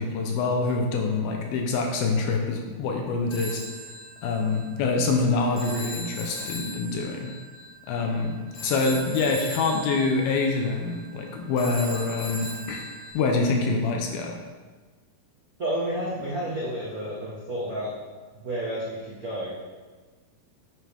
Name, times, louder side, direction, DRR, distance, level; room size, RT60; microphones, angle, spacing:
voice 1, 0.0-3.6 4.2-7.3 7.9-8.3 8.6-12.9 13.1-14.4, left 3 dB, 80° left, 2 dB, 2.7 m, -25 dB
Telephone, 3.3-13.1, equal, 50° left, 2.4 m, -39 dB
voice 2, 15.6-17.9 18.4-19.5, right 1 dB, 70° right, -7 dB, 0.8 m, -30 dB
9.7 x 9.2 x 3.6 m, 1.4 s
omnidirectional pair, 4.3 m